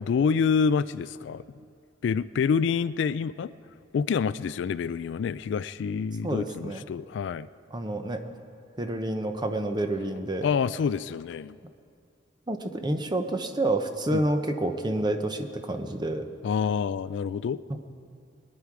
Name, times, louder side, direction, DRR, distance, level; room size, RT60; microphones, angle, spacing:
voice 1, 0.0-1.4 2.0-3.5 3.9-7.5 10.4-11.6 14.1-14.3 16.4-17.6, left 6 dB, 65° left, 17 dB, 0.3 m, -27 dB
voice 2, 6.2-6.9 7.7-8.2 8.8-10.5 12.5-16.3 17.7-17.8, right 1 dB, 25° right, 7 dB, 0.8 m, -28 dB
22.0 x 9.9 x 4.8 m, 2.4 s
head